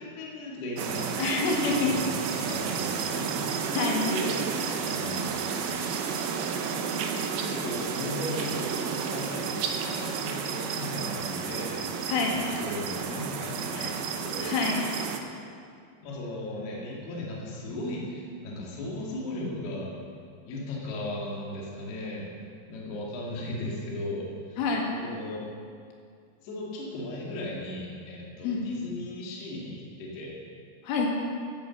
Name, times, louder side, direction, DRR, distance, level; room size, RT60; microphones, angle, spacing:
voice 1, 0.0-1.1 1.5-3.3 4.1-4.4 4.8-5.6 7.4-8.7 9.1-11.8 12.2-14.5 16.0-19.9 20.5-22.3 22.7-24.6 25.0-25.4 26.4-30.4, left 1 dB, 60° left, -4 dB, 3.8 m, -36 dB
sound 1, 0.8-15.2, right 6 dB, 85° right, 2.2 m, -31 dB
voice 2, 1.2-1.9 3.7-4.1 12.1-12.4 13.8-13.9 14.4-14.8 24.6-24.9 28.4-28.7 30.8-31.1, left 4 dB, 85° left, -1 dB, 4.4 m, -27 dB
13.5 x 8.7 x 7.2 m, 2.2 s
omnidirectional pair, 5.6 m